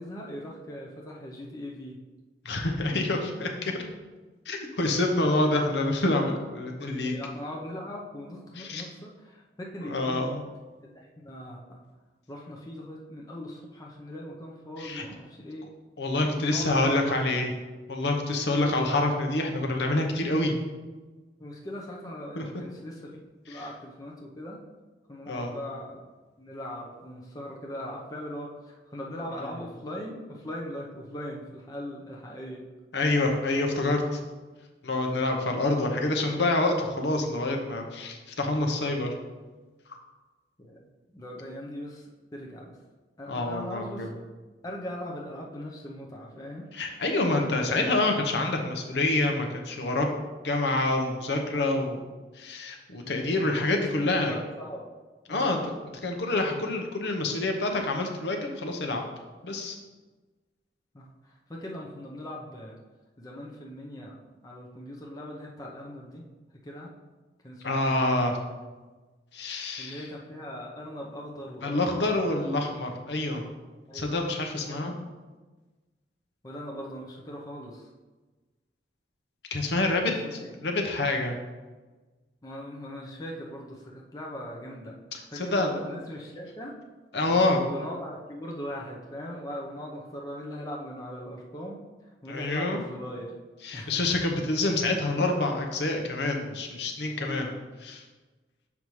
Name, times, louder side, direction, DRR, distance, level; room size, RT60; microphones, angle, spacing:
voice 1, 0.0-2.0 7.0-10.4 10.8-11.8 12.3-15.7 16.3-17.2 18.4-18.7 21.4-23.2 23.5-24.6 25.1-26.0 26.4-32.7 40.6-42.8 43.2-44.3 44.6-46.7 54.0-54.8 55.3-55.6 60.9-62.8 63.2-66.2 66.6-66.9 67.4-68.0 69.8-72.3 73.9-74.1 74.7-74.9 76.4-77.9 80.0-80.5 82.4-85.0 85.3-86.7 87.3-93.3 93.7-94.1 97.2-97.5, equal, 20° left, -2 dB, 0.7 m, -40 dB
voice 2, 2.4-3.8 4.5-7.2 8.6-8.8 9.8-10.4 14.8-15.0 16.0-17.5 17.9-20.6 22.4-22.5 25.3-25.5 32.9-34.2 34.8-39.1 43.3-44.1 46.7-50.1 50.4-52.0 52.3-54.4 55.3-55.7 56.0-59.0 59.4-59.8 67.6-68.4 69.3-70.0 71.6-73.4 73.9-74.9 79.5-81.4 85.1-85.7 87.1-87.6 92.3-92.8 93.6-97.5 97.8-98.0, left 2 dB, 70° left, 2 dB, 0.9 m, -27 dB
7.1 x 5.3 x 3.1 m, 1.2 s
head